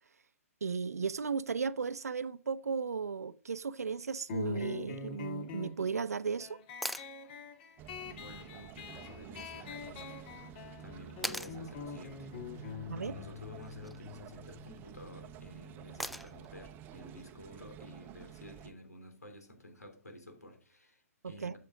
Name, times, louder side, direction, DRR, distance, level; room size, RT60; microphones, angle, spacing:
voice 1, 0.6-6.6 12.9-13.1 21.2-21.6, right 5 dB, 75° right, 0.6 m, -35 dB
sound 1, 4.3-15.4, left 6 dB, 40° left, 1.8 m, -45 dB
sound 2, 6.8-7.1 9.4-9.5 11.2-11.6 13.6-14.0 16.0-16.5 18.6-18.7, equal, ahead, 0.4 m, -39 dB
sound 3, 7.8-18.7, right 9 dB, 25° right, 0.7 m, -51 dB
voice 2, 8.1-10.2 10.8-12.3 12.6-21.6, left 1 dB, 85° left, 3.2 m, -51 dB
12.5 x 7.6 x 3.8 m
figure-of-eight pair, 125°, 8 cm